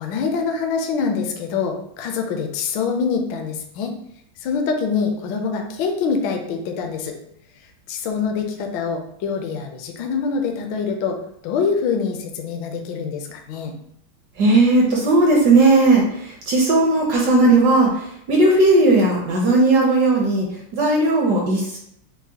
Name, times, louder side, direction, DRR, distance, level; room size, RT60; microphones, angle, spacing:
voice 1, 0.0-3.9 4.4-7.2 7.9-11.2 11.4-13.7, left 5 dB, 75° left, 3 dB, 1.2 m, -25 dB
voice 2, 14.4-20.5 20.7-21.8, right 2 dB, 65° right, -1 dB, 1.0 m, -16 dB
6.1 x 2.1 x 2.8 m, 0.71 s
omnidirectional pair, 2.3 m